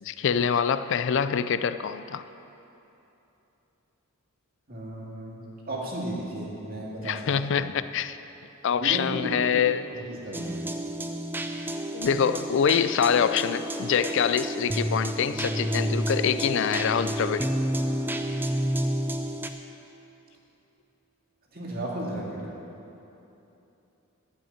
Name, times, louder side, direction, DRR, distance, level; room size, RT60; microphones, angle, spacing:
voice 1, 0.0-2.2 7.0-8.2 8.6-9.8 11.9-17.5, left 7 dB, 55° left, 13 dB, 0.4 m, -25 dB
voice 2, 4.7-7.6 8.7-9.7 9.9-10.6 21.5-22.5, right 1 dB, 45° right, -4 dB, 2.2 m, -34 dB
sound 1, 10.3-19.5, equal, 10° right, 0.4 m, -30 dB
12.5 x 5.7 x 9.0 m, 3.0 s
head